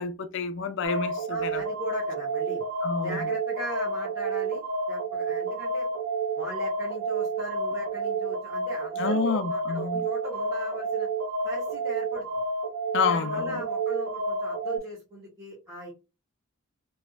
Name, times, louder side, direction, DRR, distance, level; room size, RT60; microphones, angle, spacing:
voice 1, 0.0-1.6 2.8-3.3 9.0-10.0 12.9-13.6, left 5 dB, 60° left, 0.5 m, -29 dB
sound 1, 0.8-14.8, right 3 dB, 85° right, 1.5 m, -30 dB
voice 2, 1.3-2.7 3.0-4.6 4.9-5.9 6.3-11.1 11.4-12.4 13.1-15.9, equal, 15° right, 1.3 m, -39 dB
3.2 x 3.1 x 2.4 m
head